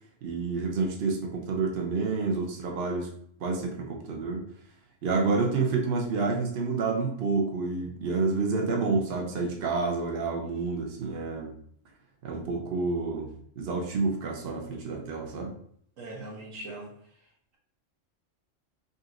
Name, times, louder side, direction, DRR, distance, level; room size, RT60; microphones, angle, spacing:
voice 1, 0.2-3.1 3.4-4.5 5.0-11.6 12.2-15.5, right 4 dB, 55° right, 1 dB, 0.9 m, -29 dB
voice 2, 16.0-17.3, right 1 dB, 90° right, -2 dB, 1.5 m, -41 dB
5.2 x 2.9 x 2.5 m, 0.65 s
omnidirectional pair, 1.3 m